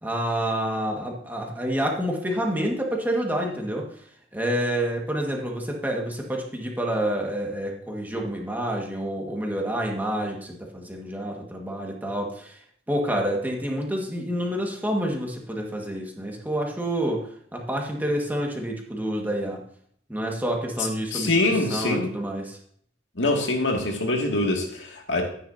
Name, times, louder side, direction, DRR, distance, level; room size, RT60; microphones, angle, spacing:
voice 1, 0.0-3.8 4.3-12.6 12.9-19.6 20.1-22.6, right 1 dB, 10° right, 0 dB, 1.8 m, -28 dB
voice 2, 21.1-22.1 23.2-25.2, left 2 dB, 80° left, 1 dB, 2.4 m, -24 dB
13.5 x 9.7 x 2.8 m, 0.62 s
head